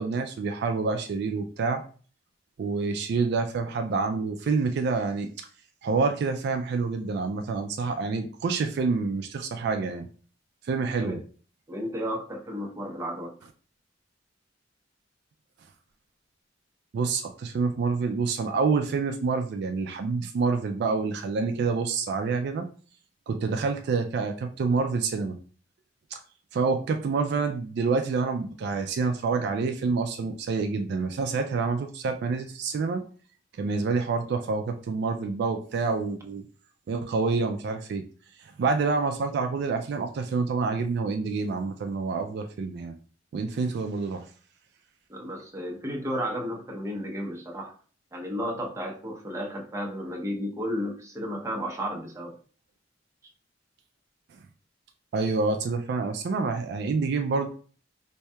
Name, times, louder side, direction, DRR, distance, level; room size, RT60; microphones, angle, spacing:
voice 1, 0.0-1.8 2.6-5.5 5.8-10.1 10.6-11.2 16.9-22.7 23.3-25.4 26.1-26.2 26.5-33.0 33.6-36.4 36.9-38.1 38.6-43.0 43.3-44.3 55.1-57.5, right 4 dB, 60° right, 0.3 m, -27 dB
voice 2, 11.7-13.4 45.1-47.7 48.1-52.3, equal, 15° right, 0.7 m, -33 dB
4.4 x 2.7 x 2.2 m
head